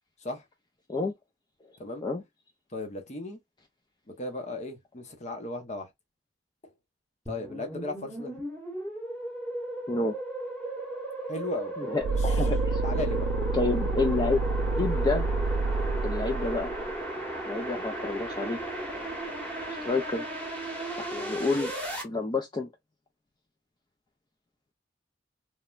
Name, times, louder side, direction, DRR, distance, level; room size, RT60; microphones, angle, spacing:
voice 1, 2.7-3.4 4.2-5.9 7.3-8.3 11.3-11.7 12.1-12.2 12.8-13.3, left 2 dB, 40° left, 0.7 m, -36 dB
sound 1, 7.3-22.0, right 1 dB, 5° left, 1.0 m, -35 dB
voice 2, 9.9-10.2 11.8-12.8 13.5-14.4 14.8-15.3 16.0-16.7 17.5-18.6 19.8-20.3 21.0-21.7 22.0-22.7, left 3 dB, 25° left, 0.4 m, -29 dB
sound 2, 12.0-16.9, right 3 dB, 70° right, 0.4 m, -28 dB
3.1 x 2.1 x 2.3 m
head